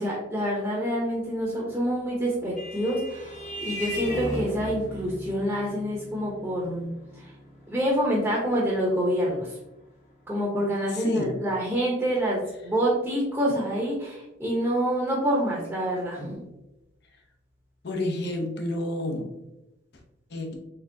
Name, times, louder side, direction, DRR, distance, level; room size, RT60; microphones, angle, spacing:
voice 1, 0.0-7.3 7.7-9.6 10.3-16.4, equal, 10° right, -5 dB, 0.8 m, -27 dB
Vehicle horn car horn honking, 1.9-10.9, equal, 35° left, 1.1 m, -38 dB
voice 2, 10.9-11.3 17.8-19.3 20.3-20.6, left 1 dB, 55° left, 2 dB, 0.8 m, -29 dB
4.4 x 3.6 x 2.7 m, 0.93 s
head